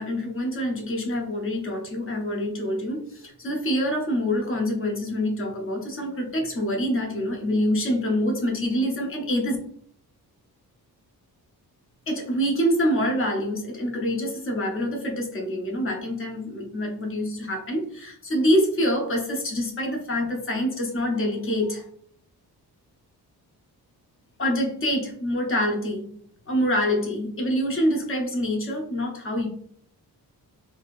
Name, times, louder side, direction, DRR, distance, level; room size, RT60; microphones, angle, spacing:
voice 1, 0.0-9.6 12.1-21.9 24.4-26.0 26.5-29.5, equal, 35° left, 1 dB, 0.7 m, -26 dB
3.4 x 2.7 x 2.5 m, 0.64 s
wide cardioid pair, 155°, 38 cm